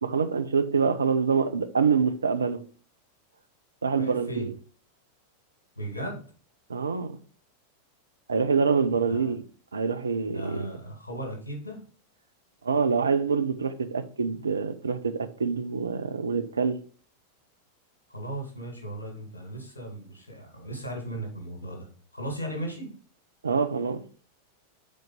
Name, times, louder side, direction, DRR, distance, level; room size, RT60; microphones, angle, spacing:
voice 1, 0.0-2.6 3.8-4.5 6.7-7.2 8.3-9.4 9.7-10.6 12.6-16.8 23.4-24.0, right 5 dB, 75° right, 0.6 m, -26 dB
voice 2, 4.0-4.5 5.8-6.2 9.1-9.3 10.2-11.8 18.1-22.9, right 1 dB, 80° left, 2.3 m, -36 dB
5.2 x 4.5 x 5.4 m
figure-of-eight pair, 90°, 0 cm